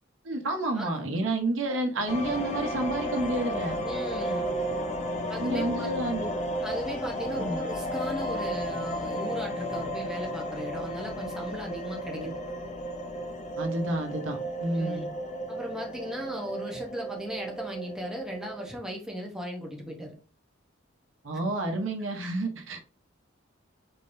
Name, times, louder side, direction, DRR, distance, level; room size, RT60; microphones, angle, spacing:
voice 1, 0.2-3.8 5.4-6.3 7.4-7.6 12.1-12.3 13.6-15.0 21.2-22.8, right 2 dB, 75° right, 3 dB, 0.9 m, -30 dB
sound 1, 2.1-18.7, equal, 35° left, 0.6 m, -33 dB
voice 2, 3.8-4.5 5.3-5.9 6.6-12.6 14.7-15.1 15.5-20.1, equal, 5° right, -1 dB, 0.8 m, -37 dB
4.4 x 3.7 x 2.6 m, 0.37 s
head